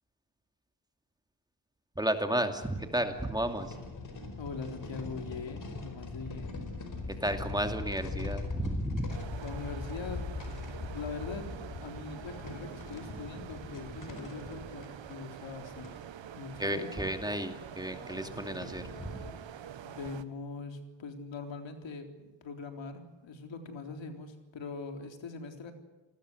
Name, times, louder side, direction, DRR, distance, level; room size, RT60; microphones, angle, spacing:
voice 1, 2.0-3.7 7.1-9.2 16.6-19.1, right 1 dB, 10° right, 6 dB, 2.6 m, -33 dB
sound 1, 2.1-2.2 2.7-16.0 16.7-16.8 17.1-17.2 17.7-19.3, left 3 dB, 45° left, 4.9 m, -41 dB
voice 2, 4.4-6.6 9.4-10.2 10.9-11.5 11.8-15.9 16.4-17.1 19.8-25.7, left 4 dB, 75° left, 5 dB, 3.8 m, -42 dB
sound 2, 9.1-20.2, right 9 dB, 75° right, 1.5 m, -46 dB
28.5 x 19.5 x 8.0 m, 1.1 s
cardioid pair, 100°, 45 cm